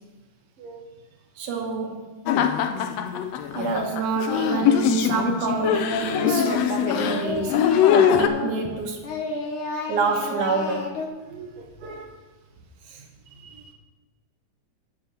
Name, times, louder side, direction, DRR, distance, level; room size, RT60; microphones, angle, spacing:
voice 1, 1.4-2.1 3.5-7.6 7.9-9.0 9.9-10.9, right 4 dB, 80° right, 0 dB, 2.7 m, -27 dB
sound 1, 2.3-8.3, left 9 dB, 90° left, 1.4 m, -22 dB
Singing, 4.3-4.8 5.1-8.7 9.0-11.1, left 3 dB, 60° left, 1.5 m, -31 dB
voice 2, 11.3-12.1 12.9-13.0 13.3-13.7, right 4 dB, 60° right, 1 dB, 2.1 m, -42 dB
8.2 x 5.6 x 7.6 m, 1.3 s
omnidirectional pair, 3.5 m